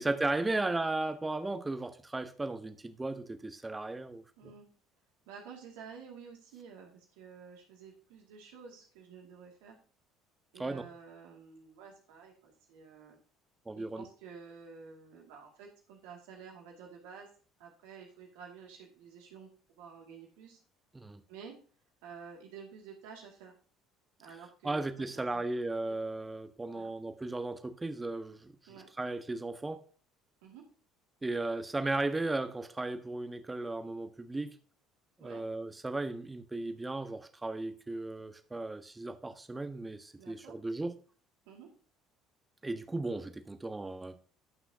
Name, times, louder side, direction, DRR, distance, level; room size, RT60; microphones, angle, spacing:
voice 1, 0.0-4.5 10.6-10.8 13.7-14.0 20.9-21.2 24.6-29.8 31.2-34.5 35.2-40.9 42.6-44.2, right 2 dB, 15° right, 1.3 m, -36 dB
voice 2, 4.4-4.7 5.3-9.8 10.5-13.2 13.7-17.3 17.6-20.6 21.3-21.6 22.0-23.5 24.2-25.4 25.9-26.0 26.7-27.0 28.7-28.9 30.4-30.6 35.2-35.4 40.2-40.6 41.5-41.7, right 6 dB, 65° right, 2.3 m, -51 dB
17.5 x 5.9 x 2.8 m
figure-of-eight pair, 60°, 0 cm